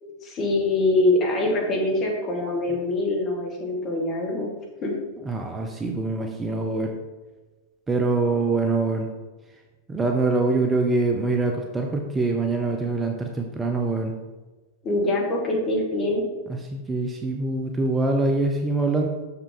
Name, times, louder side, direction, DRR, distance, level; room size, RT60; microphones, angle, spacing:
voice 1, 0.0-4.5 4.8-4.9 14.8-16.3, left 2 dB, 30° left, -1 dB, 2.0 m, -24 dB
voice 2, 5.3-6.9 7.9-9.1 9.9-14.1 16.5-19.1, right 3 dB, 15° right, 3 dB, 0.7 m, -24 dB
6.6 x 5.7 x 3.8 m, 1.2 s
figure-of-eight pair, 90°, 0 cm